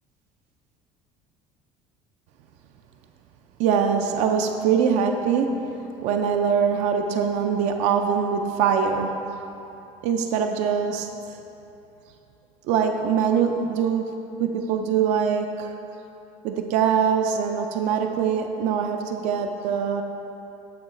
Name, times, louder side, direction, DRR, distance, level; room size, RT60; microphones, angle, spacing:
voice 1, 3.6-9.2 10.0-11.1 12.6-15.7 16.4-20.0, right 7 dB, 65° right, 4 dB, 0.4 m, -23 dB
8.5 x 3.1 x 4.1 m, 2.9 s
cardioid pair, 155°, 13 cm